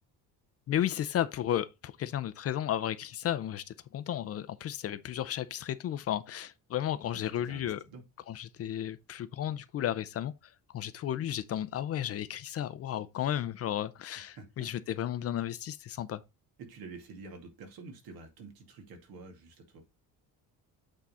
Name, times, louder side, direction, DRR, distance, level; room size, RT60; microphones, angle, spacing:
voice 1, 0.7-7.8 8.3-10.3 10.7-16.2, left 11 dB, 40° left, 0.5 m, -33 dB
voice 2, 7.1-8.0 14.3-14.7 16.6-19.8, right 3 dB, 75° right, 2.3 m, -48 dB
8.4 x 3.8 x 4.2 m
cardioid pair, 175°, 36 cm